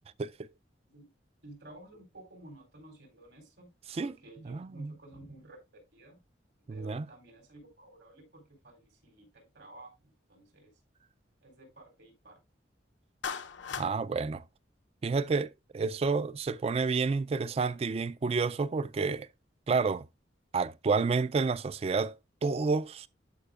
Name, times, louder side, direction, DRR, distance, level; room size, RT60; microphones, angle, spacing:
voice 1, 1.4-3.7 4.0-6.2 6.7-10.7 11.4-12.4, right 1 dB, 75° right, 4.0 m, -53 dB
voice 2, 4.5-4.9 6.7-7.0 13.8-14.4 15.0-19.3 19.7-20.0 20.5-22.1 22.4-23.1, right 4 dB, 35° right, 0.3 m, -29 dB
Clapping, 13.2-13.9, left 6 dB, 85° left, 0.7 m, -37 dB
11.5 x 5.0 x 2.4 m
head